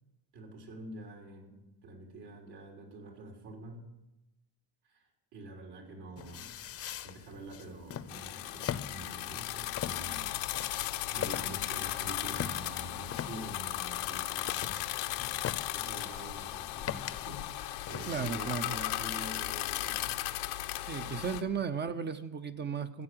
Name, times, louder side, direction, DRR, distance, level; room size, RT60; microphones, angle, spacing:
voice 1, 0.3-3.9 4.8-6.6 7.0-14.8 15.7-20.5 20.9-21.5, right 2 dB, 70° right, 0 dB, 3.9 m, -47 dB
sound 1, 6.2-18.6, left 9 dB, 40° left, 0.7 m, -42 dB
sound 2, 8.1-21.4, left 15 dB, 90° left, 1.0 m, -36 dB
voice 2, 18.1-18.7 20.9-23.0, right 6 dB, 25° right, 10 dB, 0.7 m, -35 dB
14.5 x 8.7 x 7.6 m, 0.96 s
cardioid pair, 120°, 39 cm